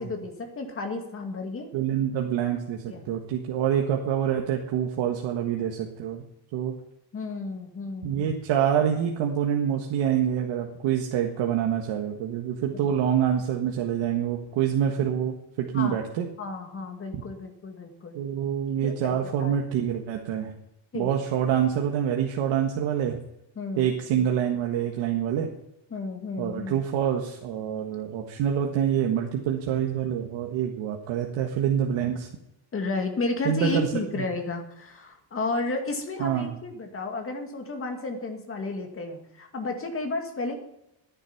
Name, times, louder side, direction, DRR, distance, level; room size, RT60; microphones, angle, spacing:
voice 1, 0.0-1.7 2.9-3.0 7.1-8.3 12.7-13.0 15.7-16.0 16.4-18.2 18.8-19.6 20.9-21.1 23.6-24.3 25.9-26.8 32.7-40.6, left 3 dB, 30° left, 4 dB, 2.2 m, -32 dB
voice 2, 1.7-6.2 6.5-6.7 8.0-16.3 18.2-20.5 20.9-23.2 23.8-25.5 26.4-32.3 33.5-33.9 34.2-34.3 36.2-36.5, right 9 dB, 80° right, 2 dB, 1.7 m, -26 dB
14.5 x 10.0 x 5.9 m, 0.86 s
cardioid pair, 150°, 45 cm